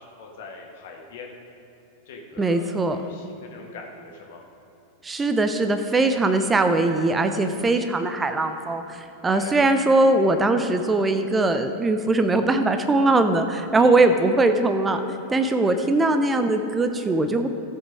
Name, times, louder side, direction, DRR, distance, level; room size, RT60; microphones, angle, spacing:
voice 1, 0.0-1.3 2.1-4.4 9.3-9.5 13.7-14.0 15.5-15.9, left 4 dB, 55° left, 0 dB, 1.8 m, -42 dB
voice 2, 2.4-3.0 5.0-15.0 15.3-17.5, right 2 dB, 15° right, 7 dB, 0.6 m, -21 dB
16.0 x 7.3 x 3.6 m, 3.0 s
figure-of-eight pair, 90°, 0 cm